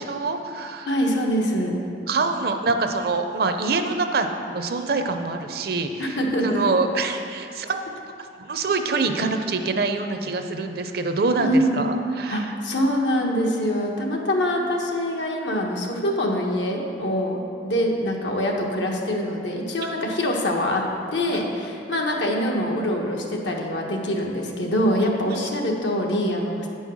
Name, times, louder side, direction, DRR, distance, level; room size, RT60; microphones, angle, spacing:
voice 1, 0.0-0.9 2.1-6.2 6.4-7.8 8.4-12.5 21.3-21.4 25.3-25.5, right 3 dB, 60° right, 6 dB, 0.6 m, -25 dB
voice 2, 0.9-1.8 6.0-6.6 11.4-11.8 12.3-20.8 21.1-26.7, equal, 85° left, 0 dB, 1.2 m, -24 dB
8.9 x 5.5 x 6.2 m, 2.6 s
head